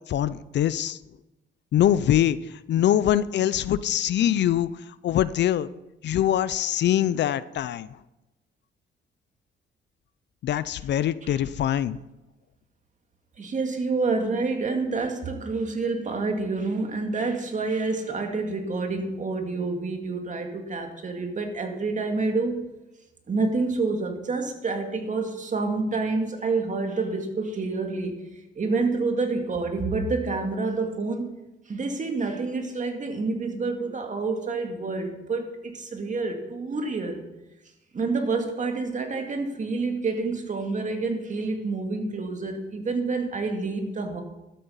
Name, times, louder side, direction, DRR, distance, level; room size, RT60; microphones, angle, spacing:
voice 1, 0.1-1.0 1.7-2.4 2.7-4.7 5.0-5.7 6.0-7.9 10.4-12.0, left 11 dB, 60° left, 17 dB, 0.5 m, -23 dB
voice 2, 13.4-22.7 23.3-31.4 31.7-37.3 37.9-44.2, right 3 dB, 40° right, 4 dB, 2.2 m, -28 dB
12.5 x 8.5 x 5.6 m, 0.99 s
cardioid pair, 90°, 20 cm